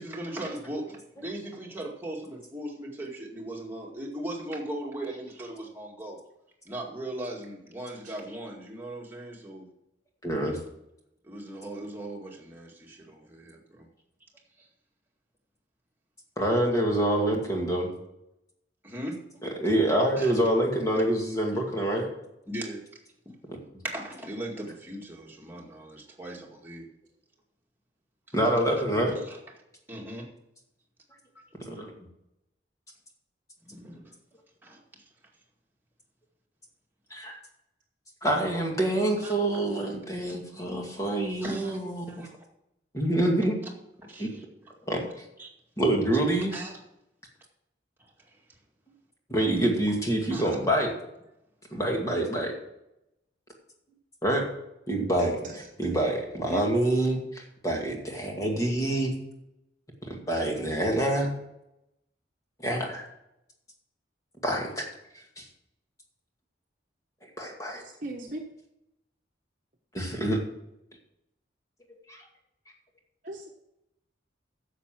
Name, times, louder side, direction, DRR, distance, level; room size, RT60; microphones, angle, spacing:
voice 1, 0.0-6.2 6.7-9.7 11.2-13.9 14.6-14.7 18.8-19.2 20.2-20.3 22.5-22.8 23.3-23.4 23.8-26.9 29.2-29.4 29.9-30.3 33.7-34.1 34.6-34.8 39.2-39.3 40.3-40.4 41.4-41.8 42.1-42.4 44.0-44.4 45.4-45.5 46.5-46.8 48.3-48.4 50.3-50.5, right 1 dB, 10° right, -2 dB, 2.1 m, -38 dB
voice 2, 10.2-10.6 16.4-17.9 19.4-22.1 23.5-23.6 28.3-29.2 31.7-31.9 37.1-37.4 38.2-42.1 42.9-43.6 44.2-44.3 44.9-45.0 45.8-46.5 49.3-50.9 51.7-52.5 54.2-54.5 54.9-55.4 55.8-59.1 60.1-61.3 62.6-63.0 64.4-64.9 65.4-65.5 67.4-67.8 69.9-70.4 72.1-72.2, right 1 dB, 20° left, 0 dB, 2.2 m, -26 dB
voice 3, 55.2-55.9 56.5-56.8 59.2-59.3 67.8-68.4 73.2-73.5, right 2 dB, 45° right, 0 dB, 1.3 m, -39 dB
10.5 x 7.4 x 6.1 m, 0.84 s
head